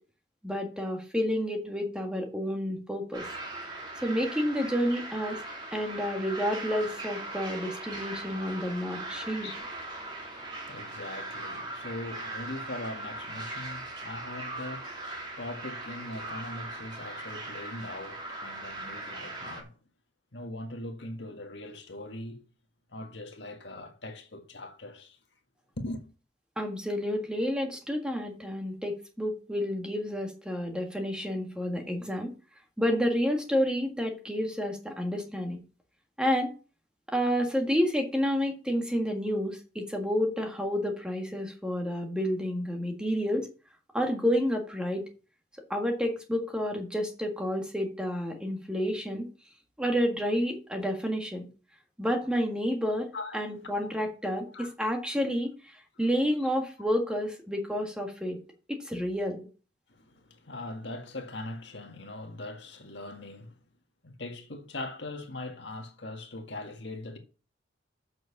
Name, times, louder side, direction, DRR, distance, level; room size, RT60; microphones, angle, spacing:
voice 1, 0.4-3.3 4.0-5.4 5.7-9.5 26.6-32.3 32.8-35.6 36.2-36.5 37.1-43.5 43.9-45.0 45.7-49.3 49.8-51.4 52.0-58.4 58.8-59.5, equal, 5° right, 1.6 m, -30 dB
sound 1, 3.1-19.6, right 2 dB, 25° right, 3.0 m, -39 dB
voice 2, 9.2-9.7 10.0-19.7 20.3-22.4 22.9-25.2 25.8-26.0 53.1-53.4 54.5-54.7 56.0-56.1 59.9-63.6 64.0-67.2, left 2 dB, 65° left, 1.8 m, -41 dB
7.6 x 6.4 x 7.2 m
head